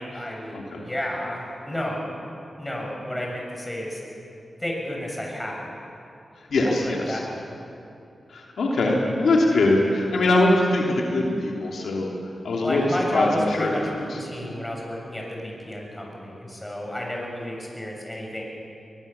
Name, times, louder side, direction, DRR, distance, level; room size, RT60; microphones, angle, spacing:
voice 1, 0.0-2.2 2.6-4.0 4.6-5.8 6.8-7.6 12.6-18.4, left 1 dB, 15° left, -1 dB, 7.1 m, -31 dB
voice 2, 0.5-0.8 6.5-7.2 8.3-12.1 12.4-13.7 14.1-14.2, left 2 dB, 85° left, -2 dB, 3.1 m, -22 dB
21.5 x 21.0 x 7.2 m, 2.7 s
cardioid pair, 60°, 0 cm